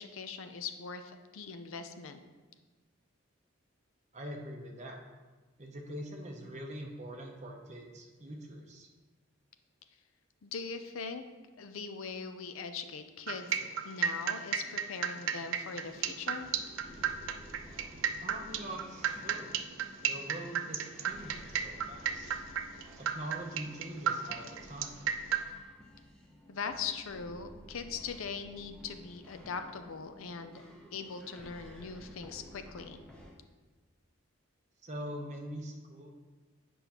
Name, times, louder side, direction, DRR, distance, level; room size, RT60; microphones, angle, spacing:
voice 1, 0.0-2.2 10.4-11.2 11.6-16.5 26.5-30.6 30.9-33.0, left 5 dB, 70° left, 8 dB, 0.5 m, -41 dB
voice 2, 4.1-5.0 5.6-8.9 18.2-19.6 20.1-22.3 23.0-25.0 34.8-36.1, right 1 dB, 30° right, 1 dB, 0.7 m, -43 dB
sound 1, 13.3-25.4, right 8 dB, 60° right, 0.4 m, -33 dB
sound 2, 15.8-33.3, equal, 5° left, 0.7 m, -53 dB
8.0 x 5.3 x 2.9 m, 1.3 s
head